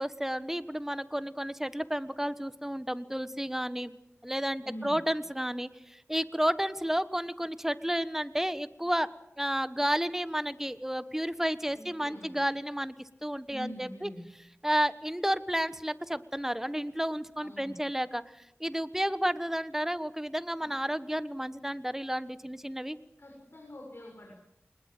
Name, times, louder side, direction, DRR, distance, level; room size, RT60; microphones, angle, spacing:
voice 1, 0.0-3.9 4.2-13.0 13.2-14.1 14.6-23.0, equal, 10° right, 13 dB, 1.3 m, -31 dB
voice 2, 4.6-5.0 11.6-12.4 13.5-14.2 17.4-17.8 20.6-20.7 23.2-24.4, equal, 55° left, 0 dB, 6.7 m, -44 dB
23.5 x 20.5 x 7.9 m, 0.81 s
wide cardioid pair, 55°, 5 cm